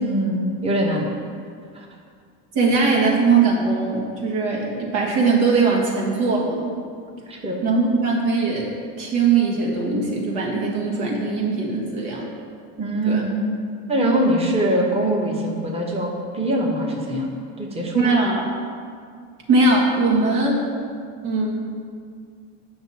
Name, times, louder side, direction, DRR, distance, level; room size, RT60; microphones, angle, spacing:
voice 1, 0.0-1.1 1.7-1.9 7.3-7.6 12.8-13.3 13.9-18.2, right 1 dB, 15° right, -1 dB, 1.0 m, -23 dB
voice 2, 2.5-6.8 7.6-8.7 9.0-12.3 13.1-13.2 17.9-18.4 19.5-20.7 21.2-21.5, right 3 dB, 75° right, -3 dB, 1.9 m, -20 dB
8.0 x 5.9 x 4.2 m, 2.2 s
supercardioid pair, 105°, 45 cm